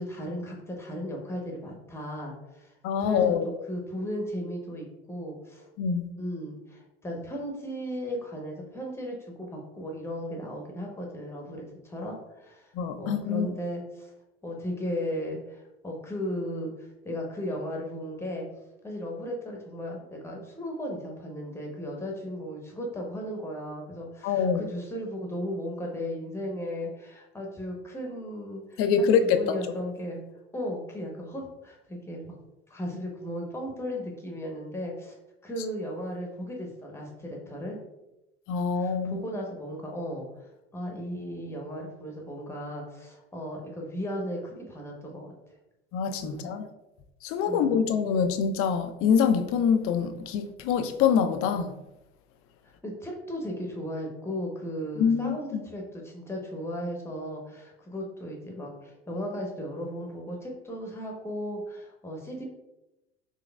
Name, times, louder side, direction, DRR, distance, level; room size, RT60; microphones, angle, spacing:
voice 1, 0.0-5.7 6.2-12.7 13.0-14.1 14.4-16.7 17.0-18.5 18.8-30.2 30.5-32.2 32.7-35.1 35.4-37.8 38.8-45.3 46.2-46.6 47.5-47.8 52.6-62.4, equal, 10° left, 0 dB, 0.9 m, -36 dB
voice 2, 2.8-3.5 5.8-6.1 12.7-13.5 24.2-24.6 28.8-29.4 38.5-39.2 45.9-46.7 47.2-51.8 55.0-55.6, left 6 dB, 40° left, 9 dB, 0.4 m, -25 dB
3.9 x 3.2 x 2.3 m, 0.95 s
hypercardioid pair, 70°, 34 cm